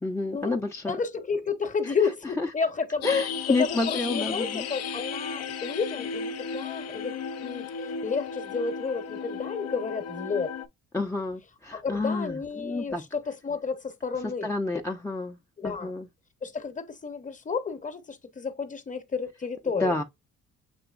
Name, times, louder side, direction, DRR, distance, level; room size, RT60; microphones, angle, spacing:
voice 1, 0.0-1.0 1.8-1.9 2.4-2.5 3.0-4.7 10.9-13.0 14.4-15.4 15.6-16.1 19.8-20.0, left 3 dB, 10° left, 0.4 m, -29 dB
voice 2, 0.9-3.1 3.5-10.5 11.7-14.5 15.6-15.9 16.4-20.0, left 5 dB, 25° left, 0.8 m, -31 dB
sound 1, 3.0-10.7, left 6 dB, 55° left, 0.6 m, -34 dB
6.9 x 3.0 x 2.4 m
cardioid pair, 90°, 30 cm